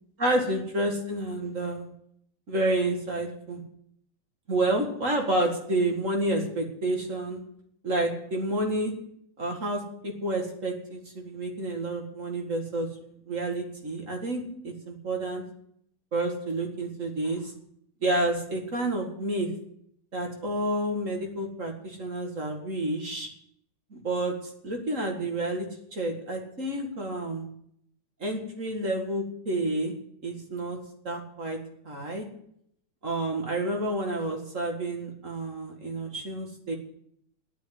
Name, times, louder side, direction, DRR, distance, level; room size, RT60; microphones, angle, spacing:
voice 1, 0.2-1.9 2.5-3.6 4.5-7.4 7.8-8.9 9.4-12.9 13.3-15.4 16.1-17.5 18.0-19.5 20.1-23.3 23.9-25.7 25.9-27.5 28.2-29.9 30.2-30.8 31.0-31.6 31.8-32.3 33.0-36.7, right 1 dB, 40° right, 2 dB, 2.3 m, -29 dB
10.5 x 9.2 x 9.6 m, 0.70 s
omnidirectional pair, 2.2 m